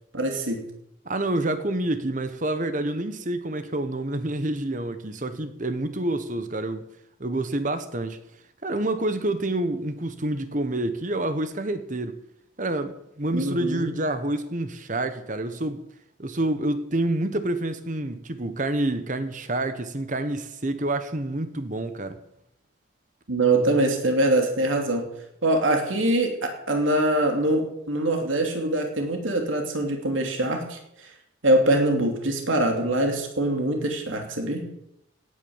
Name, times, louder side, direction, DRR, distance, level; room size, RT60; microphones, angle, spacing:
voice 1, 0.1-0.6 13.3-13.9 23.3-25.0 25.4-31.1 31.4-34.6, right 1 dB, 80° right, 2.9 m, -23 dB
voice 2, 1.0-6.8 7.2-8.2 8.6-12.2 12.6-15.8 16.2-22.2, right 1 dB, 40° right, 1.1 m, -28 dB
17.5 x 10.0 x 7.3 m
head